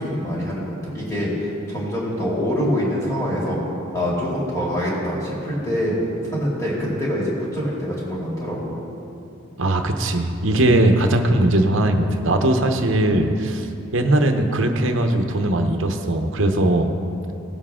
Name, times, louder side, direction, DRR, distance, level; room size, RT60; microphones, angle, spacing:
voice 1, 0.0-3.6 3.9-6.0 6.2-8.8 16.5-16.7, equal, 15° left, -6 dB, 2.5 m, -25 dB
voice 2, 9.6-13.7 13.9-16.9, right 1 dB, 60° right, 5 dB, 0.8 m, -19 dB
17.5 x 7.2 x 3.7 m, 2.7 s
head